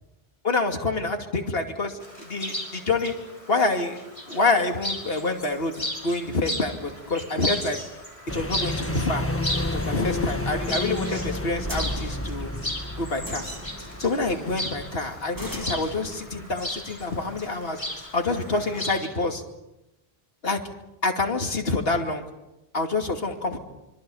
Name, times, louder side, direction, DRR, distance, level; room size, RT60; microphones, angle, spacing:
voice 1, 0.4-3.1 3.5-4.0 4.3-7.8 8.3-9.2 9.7-12.5 13.0-13.4 14.0-17.8 18.1-19.4 20.4-20.6 21.0-22.2 22.7-23.6, left 3 dB, 70° left, 4 dB, 2.8 m, -27 dB
Chirp tweet, 2.0-19.1, left 1 dB, 30° left, 5.8 m, -36 dB
sound 1, 5.3-18.3, right 1 dB, 20° right, 2.6 m, -42 dB
sound 2, 8.3-14.9, left 1 dB, 15° left, 1.6 m, -31 dB
26.0 x 25.5 x 7.1 m, 0.93 s
omnidirectional pair, 1.0 m